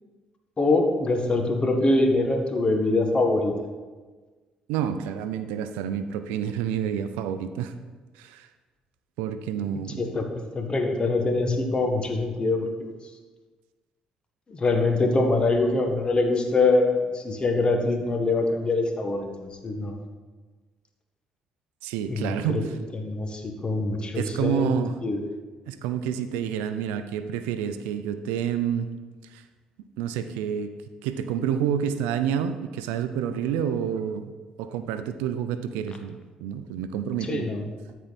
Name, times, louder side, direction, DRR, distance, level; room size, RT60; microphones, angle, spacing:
voice 1, 0.6-3.5 10.0-10.3 10.5-12.7 14.5-19.9 22.1-22.6 22.9-25.2 37.3-37.6, left 2 dB, 35° left, 3 dB, 1.6 m, -24 dB
voice 2, 4.7-7.7 8.2-8.5 9.2-10.1 21.8-22.7 24.2-25.0 25.7-28.9 29.3-29.4 30.0-30.7 31.0-34.3 34.6-37.5, right 8 dB, 85° right, 10 dB, 0.5 m, -29 dB
13.5 x 4.6 x 4.2 m, 1.3 s
supercardioid pair, 60°, 3 cm